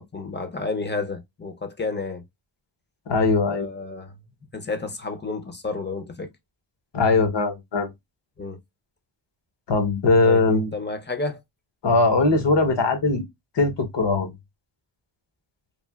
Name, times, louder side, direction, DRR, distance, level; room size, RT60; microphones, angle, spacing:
voice 1, 0.0-2.2 3.4-4.2 4.5-6.3 8.4-8.6 10.2-11.4, left 3 dB, 20° left, 0.6 m, -31 dB
voice 2, 3.1-3.7 6.9-7.9 9.7-10.7 11.8-13.2 13.6-14.3, left 3 dB, 60° left, 1.0 m, -20 dB
3.3 x 2.3 x 2.2 m
cardioid pair, 70°, 48 cm